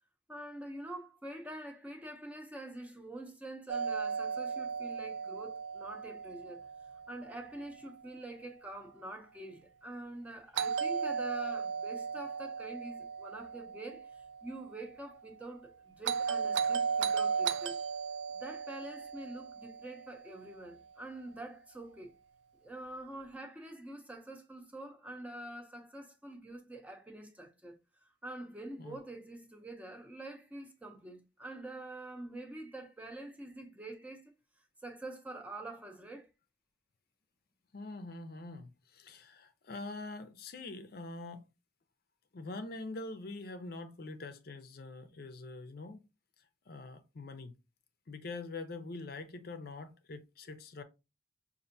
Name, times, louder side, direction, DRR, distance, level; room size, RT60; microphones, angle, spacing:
voice 1, 0.3-6.6 7.1-17.8 18.3-22.1 22.6-34.2 34.8-36.3, right 1 dB, 10° right, 0.6 m, -46 dB
Doorbell, 3.7-7.7 10.6-14.8 16.0-20.5, right 6 dB, 85° right, 0.3 m, -36 dB
voice 2, 37.7-41.5 42.3-46.0 46.7-47.5 48.1-50.8, left 3 dB, 55° left, 0.5 m, -44 dB
5.3 x 2.6 x 2.6 m
head